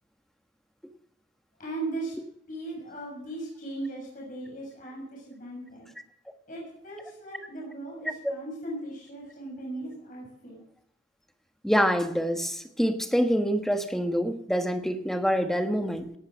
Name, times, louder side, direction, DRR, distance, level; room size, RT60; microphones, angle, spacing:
voice 1, 1.6-2.1 2.5-5.9 6.5-10.6, right 2 dB, 45° left, 6.6 m, -38 dB
voice 2, 11.6-16.1, equal, ahead, 1.4 m, -26 dB
18.0 x 11.0 x 6.3 m
head